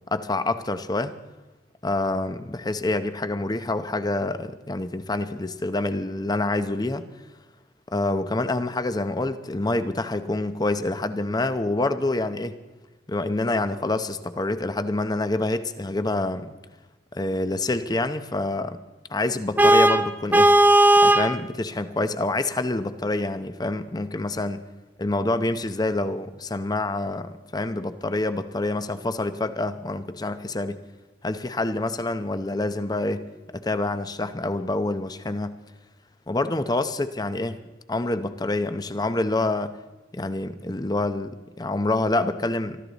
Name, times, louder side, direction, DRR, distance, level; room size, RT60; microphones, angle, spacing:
voice 1, 0.1-1.1 1.8-7.0 7.9-12.6 13.1-16.5 17.1-18.8 19.1-20.5 21.0-24.6 25.0-30.8 31.2-33.3 33.5-35.5 36.3-37.6 37.9-39.7 40.1-42.8, left 2 dB, 20° left, 11 dB, 0.7 m, -27 dB
Vehicle horn car horn honking, 19.6-21.3, right 1 dB, 10° right, 0.5 m, -16 dB
24.0 x 13.5 x 4.1 m, 1.1 s
head